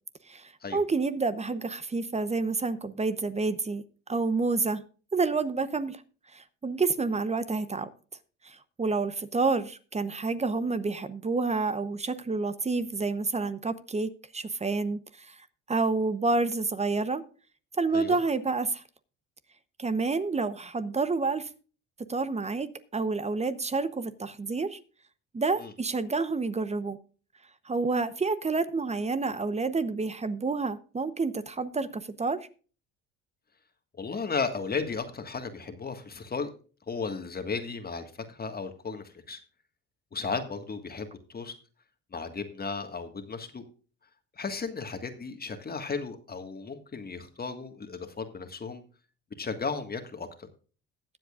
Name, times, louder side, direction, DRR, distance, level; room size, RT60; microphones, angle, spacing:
voice 1, 0.3-3.8 4.1-4.8 5.1-6.0 6.3-7.9 8.4-15.4 15.7-17.2 17.8-18.8 19.8-21.5 22.1-24.8 25.3-27.0 27.6-32.4, right 3 dB, 20° right, 13 dB, 0.8 m, -29 dB
voice 2, 34.0-36.5 36.9-39.4 40.1-41.5 42.1-43.6 44.4-48.8 49.4-50.5, left 4 dB, 30° left, 6 dB, 1.7 m, -35 dB
21.0 x 7.7 x 2.4 m, 0.38 s
cardioid pair, 100°, 32 cm